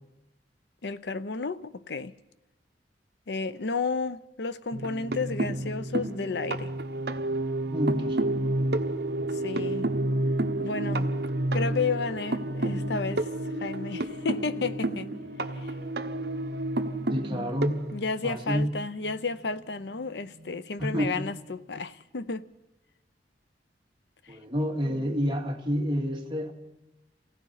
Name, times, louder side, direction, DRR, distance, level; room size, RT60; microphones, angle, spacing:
voice 1, 0.8-2.1 3.3-6.7 9.4-9.9 10.6-11.1 11.5-13.3 13.6-15.1 15.6-15.7 17.3-17.5 17.9-22.5 25.0-25.1, left 4 dB, 75° left, 0.7 m, -32 dB
sound 1, 4.7-18.7 20.0-20.1 20.4-20.6, right 1 dB, 65° right, 1.1 m, -30 dB
voice 2, 7.7-8.5 17.1-17.9 18.2-18.7 20.8-21.3 24.3-26.5, equal, 30° right, 2.1 m, -29 dB
28.5 x 16.5 x 5.7 m
head